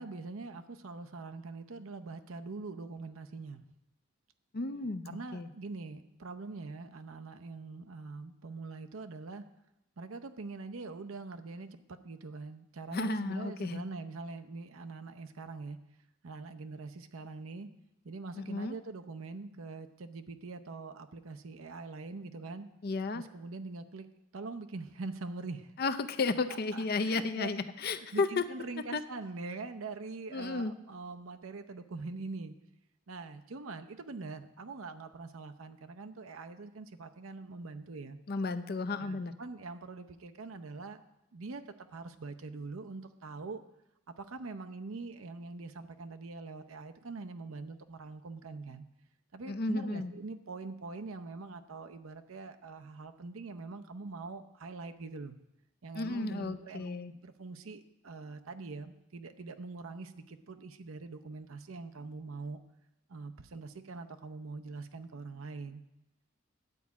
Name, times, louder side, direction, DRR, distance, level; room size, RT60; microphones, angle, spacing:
voice 1, 0.0-3.6 5.1-9.4 10.0-15.8 16.2-17.7 18.0-22.7 23.1-24.1 24.3-25.7 26.7-27.5 28.1-32.6 33.1-38.2 39.0-41.0 41.3-43.6 44.1-48.9 49.3-55.4 55.8-62.6 63.1-65.8, right 3 dB, 85° right, 8 dB, 0.7 m, -43 dB
voice 2, 4.5-5.5 12.9-13.8 18.4-18.8 22.8-23.2 25.8-28.5 28.9-29.0 30.3-30.7 38.3-39.3 49.5-50.1 55.9-57.1, left 3 dB, 50° left, 10 dB, 0.6 m, -33 dB
11.0 x 4.9 x 8.2 m, 0.89 s
head